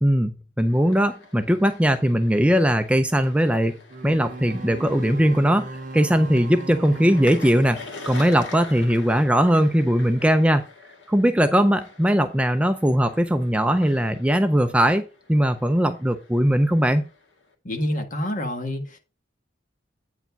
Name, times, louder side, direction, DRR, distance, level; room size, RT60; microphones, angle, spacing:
voice 1, 0.0-7.8 8.1-10.6 11.1-15.0 15.3-17.0, equal, 5° right, 0.4 m, -20 dB
sound 1, 0.6-17.5, left 3 dB, 85° left, 1.8 m, -45 dB
sound 2, 3.9-8.4, right 2 dB, 45° right, 0.7 m, -37 dB
voice 2, 17.6-19.0, left 1 dB, 45° left, 1.6 m, -27 dB
8.8 x 4.8 x 5.3 m
head